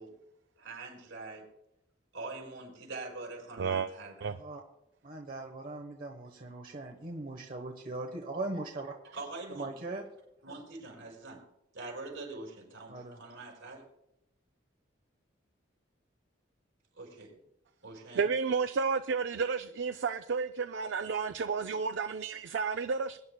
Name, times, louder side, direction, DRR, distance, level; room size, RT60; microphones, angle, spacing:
voice 1, 0.6-1.5 2.1-4.3 9.1-9.7 10.4-11.4 11.7-13.9 16.9-17.3 17.8-18.3, right 3 dB, 80° right, 4.6 m, -44 dB
voice 2, 3.6-3.9 4.2-4.4 18.2-23.2, right 5 dB, 65° right, 0.4 m, -31 dB
voice 3, 4.3-4.6 5.0-8.9 9.5-10.0 12.9-13.2, right 2 dB, 45° right, 1.0 m, -40 dB
22.0 x 9.7 x 2.2 m
head